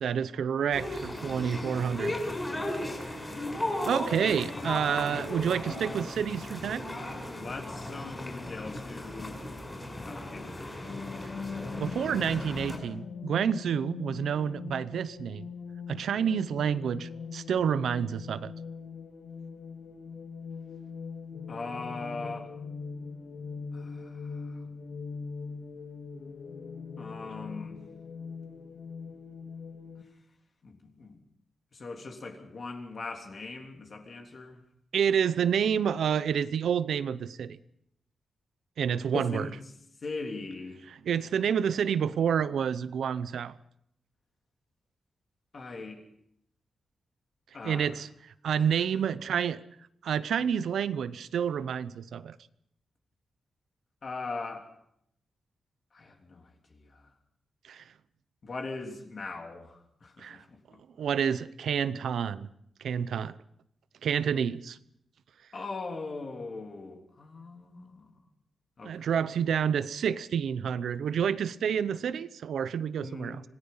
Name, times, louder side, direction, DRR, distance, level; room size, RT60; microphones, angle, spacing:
voice 1, 0.0-2.2 3.2-3.3 3.9-6.9 11.8-15.5 15.9-18.5 34.9-37.6 38.8-39.5 41.0-43.5 47.6-48.1 48.4-49.6 50.0-52.4 57.7-57.8 60.2-60.4 61.0-62.5 62.8-63.3 64.0-64.8 68.8-73.4, right 8 dB, 85° right, 15 dB, 0.8 m, -29 dB
sound 1, 0.7-12.8, left 1 dB, 15° left, 6.2 m, -36 dB
voice 2, 7.3-9.4 10.1-10.8 21.5-22.5 23.7-24.6 27.0-27.8 30.6-31.2 31.7-34.6 39.1-39.5 40.0-40.8 45.5-46.0 47.5-47.9 48.6-48.7 54.0-54.7 55.9-57.1 58.4-60.8 65.5-68.1 68.8-69.1 73.0-73.4, left 3 dB, 45° left, 3 dB, 3.3 m, -40 dB
sound 2, 10.8-30.0, left 5 dB, 65° left, 2.5 m, -41 dB
26.0 x 18.5 x 5.6 m, 0.73 s
wide cardioid pair, 130°, 0 cm